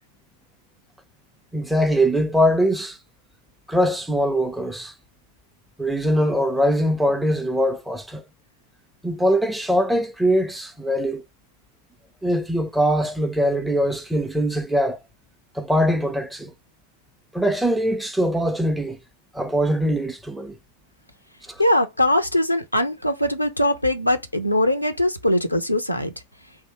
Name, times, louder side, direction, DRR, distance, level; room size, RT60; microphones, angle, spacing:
voice 1, 1.5-3.0 3.7-4.9 5.8-8.2 9.0-11.2 12.2-15.0 15.5-16.5 17.3-19.0 19.3-20.6 21.5-21.6, equal, ahead, 0.6 m, -22 dB
voice 2, 21.6-26.1, left 1 dB, 90° left, 0.6 m, -21 dB
3.6 x 2.7 x 4.5 m
figure-of-eight pair, 90°, 0 cm